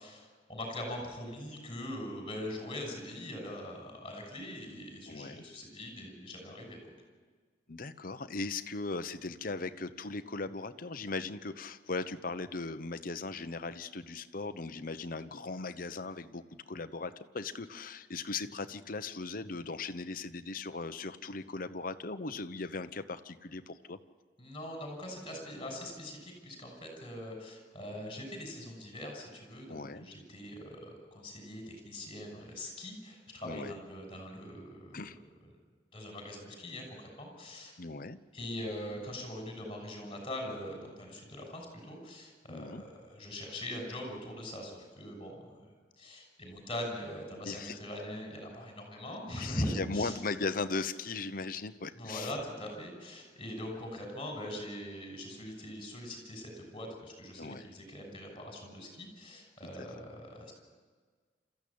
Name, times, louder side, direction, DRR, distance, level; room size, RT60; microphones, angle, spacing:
voice 1, 0.0-6.9 24.4-35.2 35.9-37.7 38.3-45.7 46.0-50.2 51.9-60.5, left 1 dB, 30° left, 2 dB, 6.4 m, -42 dB
voice 2, 5.1-5.4 7.7-24.0 29.7-30.1 33.4-33.7 34.9-35.2 37.8-38.2 42.5-42.8 47.4-47.8 49.4-52.3 57.4-57.7 59.8-59.9, left 3 dB, 55° left, 10 dB, 1.0 m, -38 dB
27.5 x 14.5 x 8.7 m, 1.5 s
head